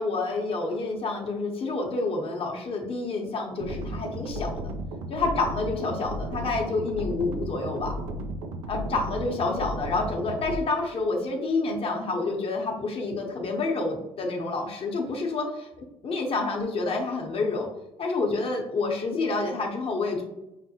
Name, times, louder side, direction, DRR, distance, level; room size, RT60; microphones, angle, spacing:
voice 1, 0.0-4.5 5.1-7.9 8.7-15.7 16.0-17.7 18.0-20.2, left 3 dB, 50° left, 1 dB, 0.9 m, -28 dB
sound 1, 3.6-10.6, equal, 90° right, 0.4 m, -34 dB
5.8 x 2.1 x 2.8 m, 0.93 s
supercardioid pair, 70°, 12 cm